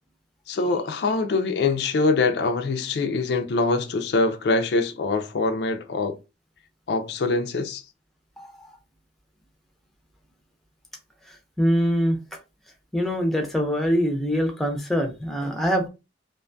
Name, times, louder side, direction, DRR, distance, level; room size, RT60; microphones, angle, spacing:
voice 1, 0.5-6.2 6.9-7.8, left 3 dB, 65° left, 0.3 m, -24 dB
voice 2, 8.4-8.7 11.3-12.2 12.9-15.9, equal, ahead, 0.4 m, -24 dB
2.5 x 2.2 x 2.5 m
head